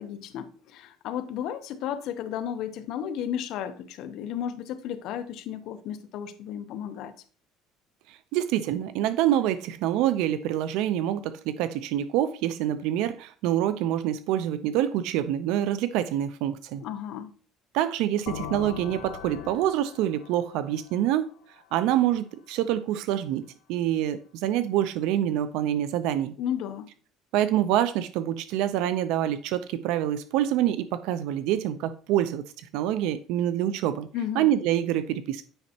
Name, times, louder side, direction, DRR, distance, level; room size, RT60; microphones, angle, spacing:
voice 1, 0.0-7.1 16.8-17.3 26.4-26.9 34.1-34.5, left 9 dB, 60° left, 0.7 m, -33 dB
voice 2, 8.1-16.8 17.7-21.3 21.7-26.3 27.3-34.1 34.4-35.5, right 12 dB, 75° right, 0.5 m, -26 dB
sound 1, 18.3-22.0, left 8 dB, 90° left, 0.9 m, -41 dB
8.9 x 5.3 x 2.8 m
cardioid pair, 155°, 0 cm